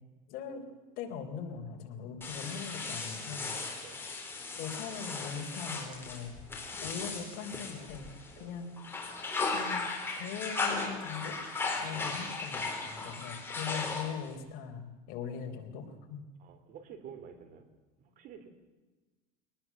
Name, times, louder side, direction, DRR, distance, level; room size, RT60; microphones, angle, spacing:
voice 1, 0.3-0.6 1.0-3.5 4.5-6.3 6.8-8.1 8.4-8.7 9.5-9.9 10.2-11.4 11.8-16.2, left 7 dB, 55° left, 4 dB, 3.9 m, -40 dB
sound 1, 2.2-8.4 8.8-14.3, left 3 dB, 10° left, 4.3 m, -37 dB
voice 2, 11.8-12.3 16.4-17.7 18.0-18.5, right 7 dB, 45° right, 10 dB, 3.3 m, -50 dB
24.0 x 19.0 x 7.4 m, 1.2 s
cardioid pair, 150°, 19 cm